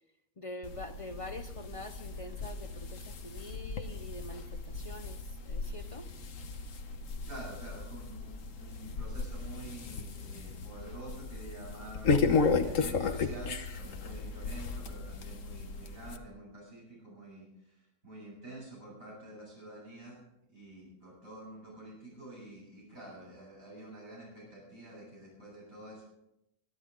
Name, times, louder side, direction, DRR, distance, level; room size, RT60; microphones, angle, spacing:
voice 1, 0.4-6.1, left 2 dB, 40° left, 9 dB, 0.5 m, -45 dB
sound 1, 0.6-16.2, left 4 dB, 65° left, 1.4 m, -35 dB
voice 2, 7.3-20.2 20.5-26.0, right 2 dB, 70° right, -6 dB, 8.6 m, -48 dB
26.0 x 10.5 x 3.8 m, 0.84 s
omnidirectional pair, 1.5 m